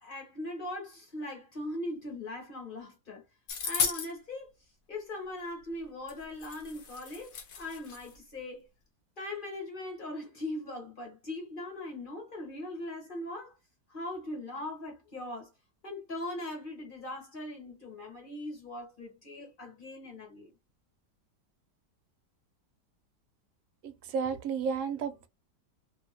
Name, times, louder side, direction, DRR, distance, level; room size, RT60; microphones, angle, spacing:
voice 1, 0.0-3.2 3.6-4.5 4.9-8.6 9.2-13.6 13.9-15.5 15.8-20.5, left 1 dB, 35° left, 1.2 m, -40 dB
sound 1, 3.5-4.1 6.1-6.2 6.4-8.1, left 6 dB, 60° left, 1.2 m, -34 dB
voice 2, 23.8-25.3, right 6 dB, 65° right, 0.8 m, -32 dB
2.8 x 2.7 x 2.8 m
omnidirectional pair, 1.9 m